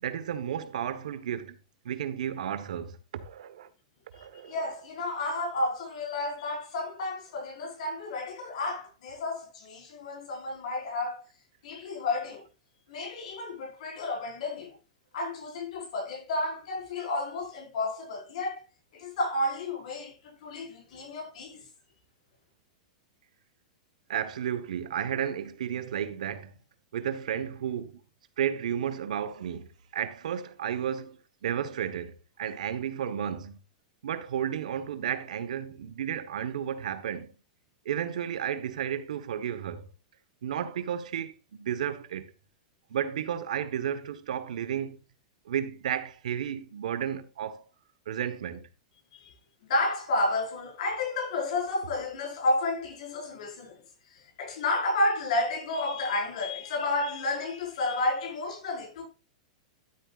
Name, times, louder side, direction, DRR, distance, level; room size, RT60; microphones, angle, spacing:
voice 1, 0.0-1.6 1.8-3.7 4.1-4.6 24.1-26.5 26.9-28.0 28.4-29.7 29.9-33.6 34.0-37.3 37.8-39.9 40.4-42.3 42.9-45.0 45.4-47.6 48.1-48.6, right 9 dB, 85° right, 1.3 m, -33 dB
voice 2, 4.4-11.2 11.6-12.5 12.9-14.8 15.1-18.6 18.9-21.6 49.1-49.3 49.6-53.8 54.1-59.1, left 2 dB, 70° left, 5.4 m, -31 dB
12.5 x 8.2 x 2.5 m
supercardioid pair, 140°, 4 cm